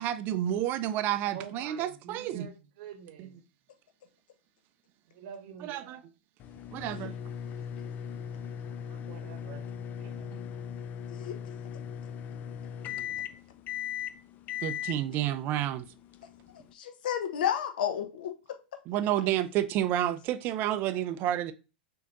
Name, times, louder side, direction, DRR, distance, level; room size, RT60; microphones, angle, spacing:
voice 1, 0.0-2.5 3.2-3.3 5.6-6.0 6.7-7.2 10.3-10.4 14.6-15.9 18.9-21.5, right 12 dB, 40° right, 0.4 m, -30 dB
voice 2, 1.2-3.4 5.1-6.0 6.9-7.0 8.8-9.6 9.9-10.3, right 8 dB, 55° right, 0.9 m, -47 dB
sound 1, 6.4-16.7, left 9 dB, 35° left, 0.4 m, -39 dB
voice 3, 16.7-18.3, left 9 dB, 65° left, 0.8 m, -31 dB
6.2 x 2.8 x 2.5 m
hypercardioid pair, 100°, 5 cm